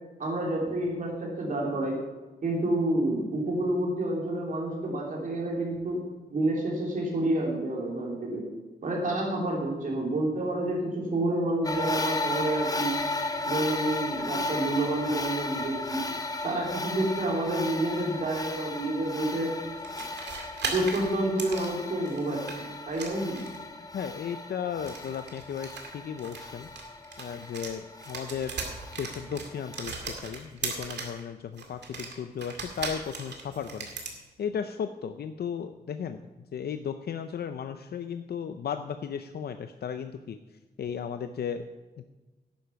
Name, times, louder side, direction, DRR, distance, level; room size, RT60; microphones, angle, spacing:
voice 1, 0.2-2.0 2.4-6.0 6.3-8.4 8.8-12.9 13.4-16.0 16.4-19.5 20.7-22.4 22.9-23.4, right 1 dB, 50° right, -2 dB, 3.1 m, -29 dB
sound 1, 11.6-29.9, left 2 dB, 20° left, 0.8 m, -35 dB
sound 2, 19.8-22.6 22.9-23.7 24.8-27.7 28.0-31.2 31.6-34.2, right 4 dB, 85° right, 2.1 m, -38 dB
voice 2, 23.9-25.7 25.9-26.7 27.2-28.6 29.0-33.9 34.4-36.2 36.5-40.4 40.8-41.6, left 7 dB, 70° left, 9 dB, 0.5 m, -35 dB
11.5 x 9.3 x 5.7 m, 1.2 s
wide cardioid pair, 175°, 17 cm